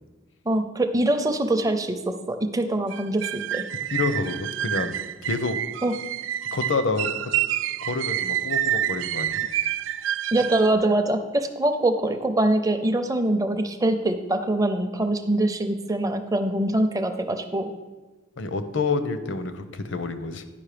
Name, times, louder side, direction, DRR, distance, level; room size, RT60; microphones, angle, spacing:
voice 1, 0.5-2.0 2.3-3.6 5.8-5.9 10.3-17.7, right 1 dB, 20° right, 7 dB, 0.5 m, -23 dB
sound 1, 2.9-10.7, right 12 dB, 75° right, 0.3 m, -28 dB
voice 2, 3.9-5.0 5.3-5.6 6.5-7.3 7.8-9.4 18.4-20.4, left 3 dB, 70° left, 10 dB, 0.7 m, -28 dB
10.5 x 5.3 x 5.0 m, 1.2 s
head